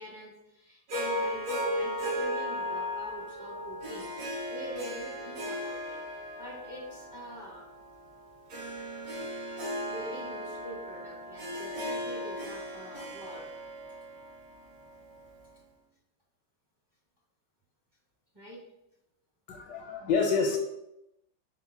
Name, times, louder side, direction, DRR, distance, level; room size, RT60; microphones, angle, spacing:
voice 1, 0.0-6.0 6.4-7.7 9.5-13.5 18.3-18.6, equal, 25° right, -5 dB, 0.5 m, -44 dB
Harp, 0.9-15.3, equal, 75° right, 1.7 m, -36 dB
voice 2, 19.5-20.6, left 5 dB, 85° left, 2 dB, 1.2 m, -27 dB
4.1 x 2.1 x 4.3 m, 0.85 s
omnidirectional pair, 1.9 m